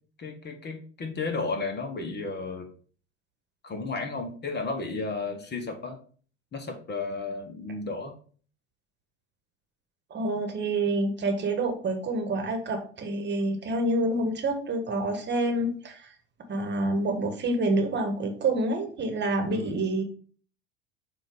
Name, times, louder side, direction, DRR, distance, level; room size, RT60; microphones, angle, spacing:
voice 1, 0.2-2.7 3.6-6.0 6.5-8.1 19.5-19.8, left 3 dB, 30° left, 5 dB, 1.2 m, -33 dB
voice 2, 10.1-16.1 16.5-20.0, right 2 dB, 30° right, 5 dB, 1.4 m, -27 dB
7.4 x 2.7 x 5.2 m, 0.43 s
hypercardioid pair, 80°, 36 cm